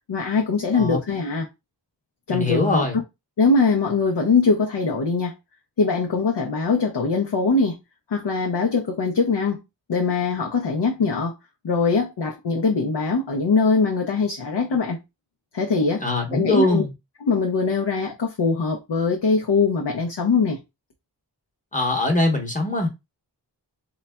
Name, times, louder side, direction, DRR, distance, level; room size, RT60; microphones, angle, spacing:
voice 1, 0.1-1.5 2.3-2.9 3.4-5.3 5.8-7.8 8.1-9.6 9.9-11.3 11.6-15.0 15.5-16.0 16.3-16.8 17.2-20.6, left 4 dB, 70° left, 0.6 m, -22 dB
voice 2, 2.3-3.0 16.0-16.9 21.7-22.9, left 2 dB, 15° left, 1.0 m, -22 dB
3.9 x 2.2 x 2.2 m
wide cardioid pair, 50°, 44 cm